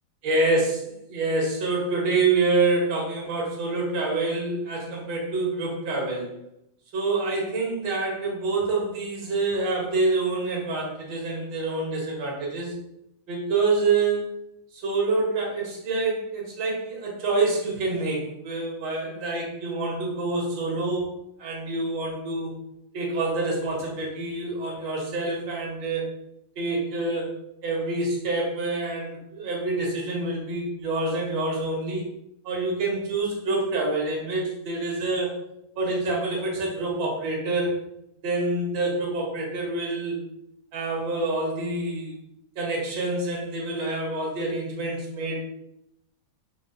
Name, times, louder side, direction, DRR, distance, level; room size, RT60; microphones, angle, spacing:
voice 1, 0.2-6.3 6.9-12.8 13.3-14.3 14.8-21.1 21.4-22.5 22.9-26.1 26.6-27.3 27.6-32.1 32.4-35.4 35.8-37.8 38.2-40.2 40.7-42.2 42.6-45.5, right 3 dB, 85° right, -2 dB, 1.7 m, -27 dB
4.5 x 2.4 x 2.2 m, 0.81 s
omnidirectional pair, 2.0 m